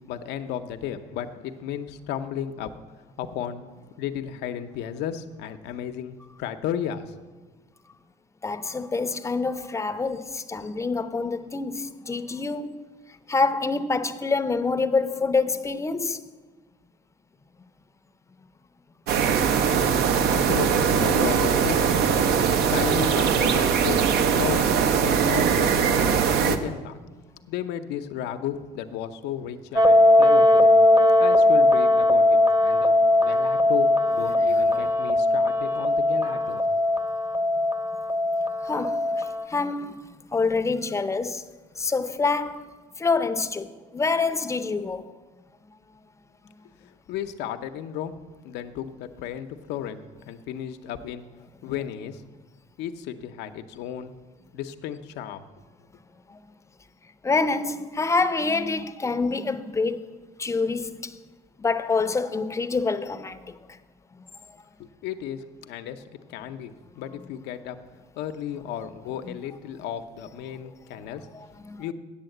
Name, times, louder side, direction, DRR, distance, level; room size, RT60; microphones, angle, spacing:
voice 1, 0.1-2.7 3.2-3.7 4.0-7.2 20.3-21.9 22.7-27.0 27.5-30.7 31.2-36.6 46.8-48.1 48.4-51.2 51.6-52.2 52.8-54.1 54.5-55.5 64.8-66.0 66.3-67.8 68.2-71.3 71.8-71.9, left 9 dB, 90° left, 0.7 m, -34 dB
voice 2, 8.4-12.8 13.3-16.2 38.6-40.0 40.3-41.4 41.8-42.6 43.0-45.0 56.3-56.4 57.2-60.0 60.4-61.1 61.6-63.4 69.3-69.4 71.3-71.8, left 4 dB, 15° left, 0.6 m, -26 dB
sound 1, 19.1-26.6, right 7 dB, 75° right, 0.8 m, -21 dB
sound 2, 29.8-39.4, left 1 dB, 20° right, 0.8 m, -19 dB
8.7 x 7.1 x 7.7 m
cardioid pair, 110°, 17 cm